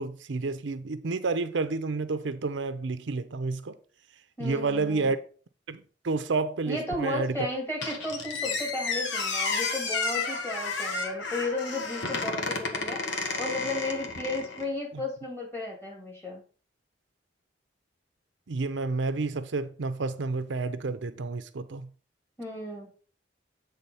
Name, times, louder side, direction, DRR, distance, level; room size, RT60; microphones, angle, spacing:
voice 1, 0.0-3.8 4.4-5.2 5.7-7.4 18.5-21.9, right 3 dB, 75° right, 0.6 m, -30 dB
voice 2, 4.4-5.2 6.7-16.4 22.4-22.9, left 2 dB, 15° left, 2.5 m, -34 dB
Squeak, 7.8-14.7, left 4 dB, 75° left, 1.3 m, -31 dB
8.2 x 3.7 x 5.5 m
head